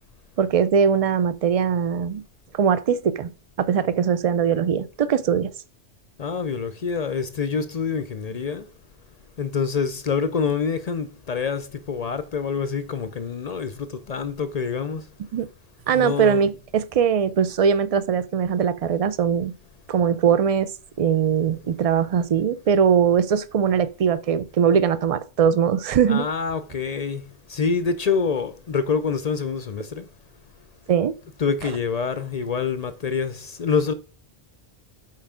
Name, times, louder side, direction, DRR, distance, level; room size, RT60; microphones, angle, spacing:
voice 1, 0.4-2.2 2.5-3.3 3.6-5.5 15.3-15.5 15.9-19.5 19.9-20.7 21.0-26.3 30.9-31.1, right 7 dB, 55° right, 0.4 m, -21 dB
voice 2, 6.2-8.7 9.4-15.1 15.9-16.5 26.1-27.2 27.5-30.1 31.4-33.9, left 5 dB, 50° left, 0.5 m, -26 dB
5.7 x 4.5 x 4.9 m
omnidirectional pair, 1.1 m